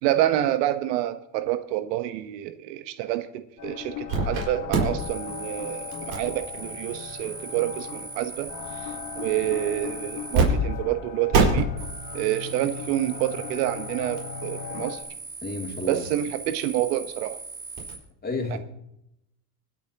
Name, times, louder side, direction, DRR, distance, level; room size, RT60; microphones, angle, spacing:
voice 1, 0.0-8.5 9.1-11.7 12.1-15.0 15.9-17.4 18.5-18.6, right 13 dB, 75° right, 10 dB, 1.2 m, -28 dB
sound 1, 3.6-15.0, left 8 dB, 45° left, 1.8 m, -38 dB
sound 2, 4.1-4.4 4.7-10.4 10.7-10.8 11.3-17.9, right 4 dB, 45° right, 5.1 m, -31 dB
voice 2, 15.4-16.0 18.2-18.6, left 2 dB, 20° left, 1 dB, 2.9 m, -30 dB
25.0 x 9.0 x 2.9 m, 0.80 s
supercardioid pair, 100°, 50 cm